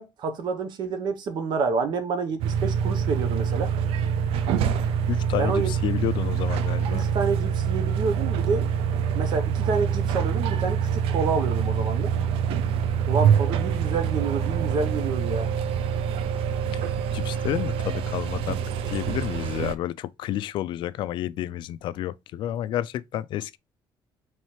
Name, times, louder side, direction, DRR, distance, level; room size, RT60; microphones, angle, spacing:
voice 1, 0.0-3.7 5.4-5.7 6.9-8.7 9.1-12.1 13.1-15.5, right 5 dB, 55° right, 0.8 m, -28 dB
sound 1, 2.4-19.7, right 7 dB, 85° right, 0.5 m, -25 dB
voice 2, 5.1-7.0 16.7-16.8 17.1-18.6 18.9-23.6, left 12 dB, 60° left, 0.3 m, -30 dB
4.2 x 3.2 x 3.0 m
cardioid pair, 165°, 9 cm